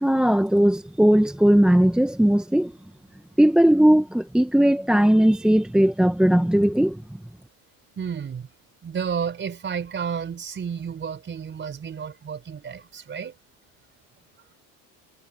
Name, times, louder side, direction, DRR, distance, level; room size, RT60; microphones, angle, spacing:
voice 1, 0.0-2.7 3.4-7.2, equal, ahead, 0.9 m, -18 dB
voice 2, 8.0-8.5 8.8-13.3, right 7 dB, 30° right, 4.2 m, -31 dB
cardioid pair, 130°, 36 cm